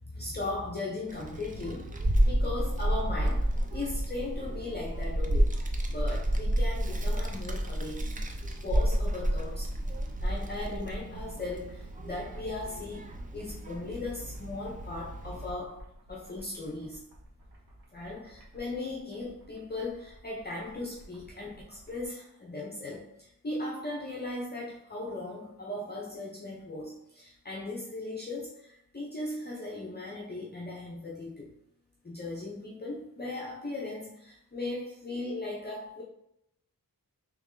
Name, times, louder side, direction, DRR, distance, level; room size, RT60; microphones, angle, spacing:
voice 1, 0.1-5.5 5.9-8.1 8.6-9.7 10.2-15.8 16.1-17.0 17.9-31.5 32.0-36.0, left 2 dB, 30° left, -3 dB, 0.6 m, -38 dB
Child speech kid speaking, 1.1-15.5, right 1 dB, 25° right, 0.4 m, -30 dB
sound 1, 8.7-22.1, right 1 dB, 75° right, 1.1 m, -52 dB
3.4 x 3.1 x 3.7 m, 0.78 s
wide cardioid pair, 130°, 36 cm